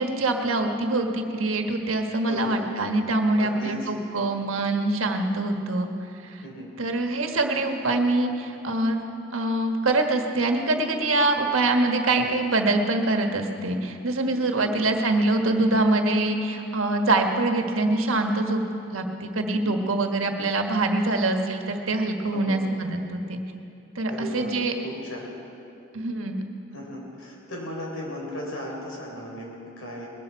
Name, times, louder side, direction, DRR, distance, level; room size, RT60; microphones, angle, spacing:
voice 1, 0.0-5.9 6.3-6.4 6.8-9.0 9.3-18.6 18.9-23.4 23.9-24.7 25.9-26.4, right 2 dB, 90° right, 4 dB, 1.4 m, -24 dB
voice 2, 2.2-2.7 3.4-3.9 6.4-6.7 14.5-14.7 19.5-19.8 22.3-22.6 24.1-25.3 26.7-30.1, left 1 dB, 80° left, -2 dB, 4.0 m, -36 dB
21.0 x 12.0 x 4.6 m, 2.7 s
head